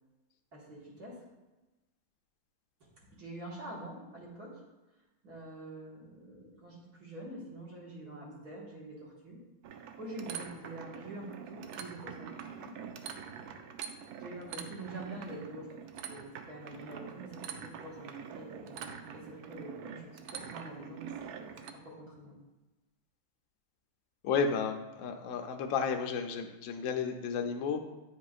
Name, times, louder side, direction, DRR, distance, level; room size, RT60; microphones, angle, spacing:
voice 1, 0.5-1.2 2.8-4.6 5.2-9.4 10.0-12.9 13.4-13.6 14.2-15.7 16.1-22.4, right 1 dB, 50° right, -5 dB, 2.0 m, -46 dB
sound 1, 9.6-21.7, right 7 dB, 80° right, 0.8 m, -45 dB
voice 2, 24.2-27.8, left 6 dB, 75° left, 4 dB, 0.7 m, -32 dB
9.7 x 5.1 x 2.5 m, 1.1 s
omnidirectional pair, 2.2 m